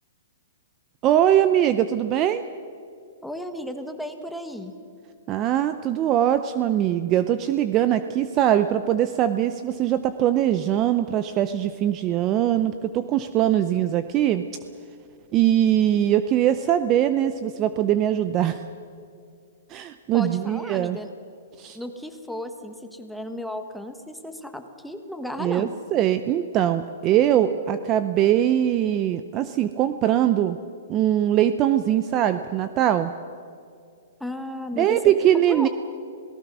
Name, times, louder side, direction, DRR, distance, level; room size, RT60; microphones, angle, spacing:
voice 1, 1.0-2.4 5.3-14.4 15.3-18.6 19.7-21.0 21.6-21.8 25.4-30.6 30.9-33.1 34.7-35.7, right 11 dB, 25° right, 11 dB, 0.6 m, -22 dB
voice 2, 3.2-4.7 20.1-21.1 21.7-25.7 34.2-35.0 35.5-35.7, left 1 dB, ahead, 6 dB, 1.3 m, -34 dB
27.0 x 18.0 x 6.2 m, 2.4 s
hypercardioid pair, 160°, 0 cm